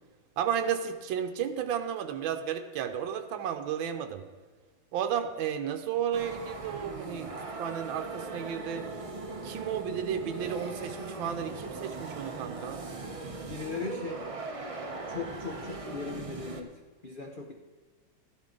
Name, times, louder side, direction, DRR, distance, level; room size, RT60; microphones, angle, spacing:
voice 1, 0.4-4.2 4.9-7.3 7.6-8.9 9.4-12.8, right 8 dB, 80° right, 6 dB, 1.6 m, -33 dB
sound 1, 6.1-16.6, right 3 dB, 45° right, 0.4 m, -39 dB
voice 2, 13.5-14.2 15.1-16.7 17.0-17.5, left 4 dB, 70° left, 3 dB, 0.4 m, -38 dB
13.5 x 11.0 x 3.8 m, 1.4 s
omnidirectional pair, 2.1 m